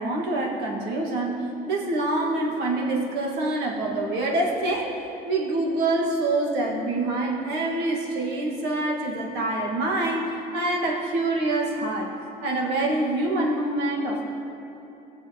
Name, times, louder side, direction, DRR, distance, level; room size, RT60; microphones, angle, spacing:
voice 1, 0.0-4.9 5.2-12.1 12.4-14.3, right 2 dB, 85° right, -1 dB, 1.4 m, -26 dB
15.5 x 6.8 x 2.8 m, 3.0 s
cardioid pair, 110°, 17 cm